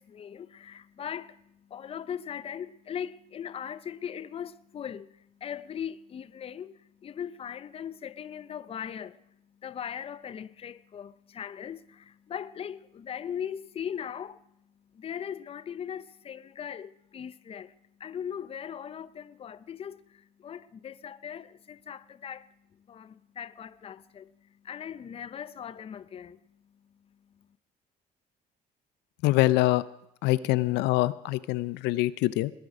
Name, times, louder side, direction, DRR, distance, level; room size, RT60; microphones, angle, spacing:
voice 1, 0.0-14.4 14.9-27.5, left 8 dB, 35° left, 0.6 m, -40 dB
voice 2, 29.2-29.8 30.2-32.5, left 17 dB, 90° left, 0.5 m, -24 dB
20.0 x 10.5 x 4.9 m
cardioid pair, 110°, 17 cm